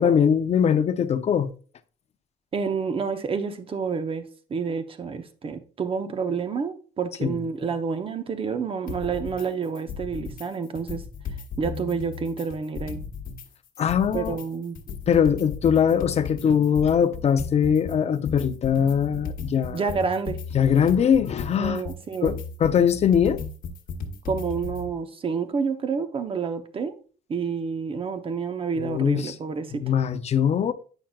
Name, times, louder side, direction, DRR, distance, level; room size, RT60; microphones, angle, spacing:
voice 1, 0.0-1.5 7.2-7.3 13.8-14.4 15.1-19.8 20.5-21.8 22.2-22.3 22.6-23.4 28.8-29.3 29.7-30.7, left 8 dB, 40° left, 0.6 m, -21 dB
voice 2, 2.5-11.0 11.6-13.0 14.1-14.8 19.7-20.4 21.6-22.4 24.2-27.0 27.3-29.9, right 5 dB, 30° right, 0.8 m, -29 dB
sound 1, 8.9-9.5 9.8-10.5 10.8-13.5 13.8-24.9, left 5 dB, 55° left, 1.1 m, -35 dB
8.9 x 5.7 x 2.4 m
cardioid pair, 110°, 17 cm